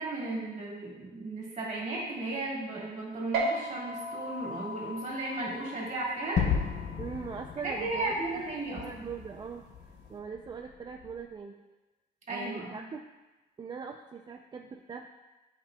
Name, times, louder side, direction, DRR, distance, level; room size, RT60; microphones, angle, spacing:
voice 1, 0.0-6.4 7.6-9.1 12.3-12.8, right 2 dB, 45° right, -3 dB, 2.0 m, -35 dB
sound 1, 3.3-10.1, right 1 dB, 80° right, 1.0 m, -38 dB
Gunshot gunfire / Fireworks / Boom, 6.4-11.2, left 7 dB, 45° left, 0.7 m, -35 dB
voice 2, 7.0-11.6 12.3-13.0 13.6-15.1, right 6 dB, 25° right, 3 dB, 0.3 m, -41 dB
8.6 x 5.1 x 2.2 m, 1.1 s
cardioid pair, 110°, 17 cm